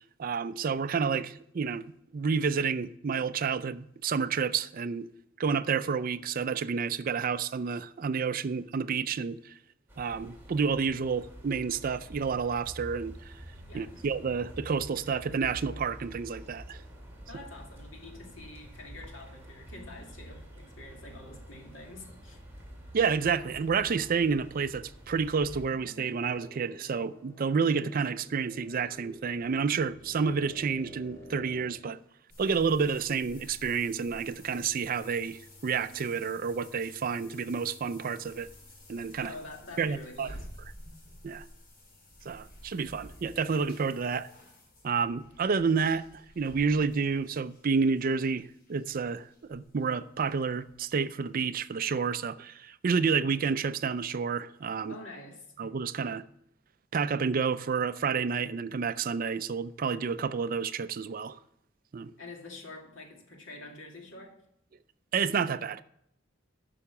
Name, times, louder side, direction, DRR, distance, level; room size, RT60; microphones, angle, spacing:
voice 1, 0.2-1.9 2.1-5.1 5.4-9.5 10.0-13.3 13.7-16.8 22.9-32.0 32.4-38.5 38.9-39.3 39.8-40.3 41.2-41.4 42.3-44.3 44.8-54.9 55.6-56.2 56.9-61.4 61.9-62.1 65.1-65.8, right 5 dB, 45° right, 0.4 m, -30 dB
sound 1, 9.9-25.7, right 1 dB, 10° right, 2.5 m, -48 dB
voice 2, 13.7-14.1 17.3-22.4 39.2-40.5 54.9-55.5 62.2-64.3, left 2 dB, 80° left, 2.2 m, -46 dB
sound 2, 25.5-31.7, equal, 15° left, 1.8 m, -51 dB
Sink Tap, 32.3-51.0 51.3-51.4 51.9-52.0, equal, 50° left, 3.7 m, -52 dB
9.9 x 5.9 x 7.0 m
head